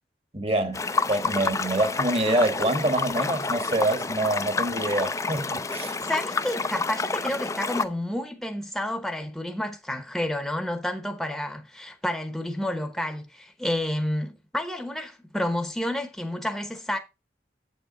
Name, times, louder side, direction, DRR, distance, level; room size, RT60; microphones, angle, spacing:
voice 1, 0.3-0.8 1.1-6.0, right 1 dB, 35° right, 1.3 m, -26 dB
sound 1, 0.7-7.8, left 4 dB, 15° left, 0.4 m, -29 dB
voice 2, 6.0-17.0, left 1 dB, ahead, 0.9 m, -30 dB
8.1 x 7.1 x 3.8 m
head